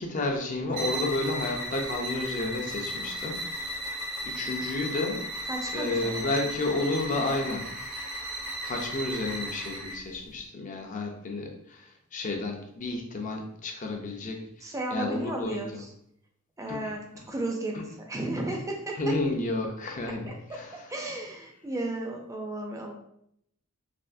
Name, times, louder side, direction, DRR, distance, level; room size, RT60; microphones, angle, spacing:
voice 1, 0.0-3.6 4.2-5.3 5.7-7.7 8.6-15.6 16.7-16.9 19.0-20.7, left 2 dB, 35° left, 2 dB, 0.5 m, -31 dB
sound 1, 0.7-10.1, equal, 75° right, 1.0 m, -35 dB
voice 2, 5.4-6.5 14.6-15.9 16.6-19.0 20.3-20.6 20.9-22.9, right 2 dB, 15° right, 1 dB, 0.5 m, -34 dB
3.4 x 2.4 x 2.6 m, 0.73 s
head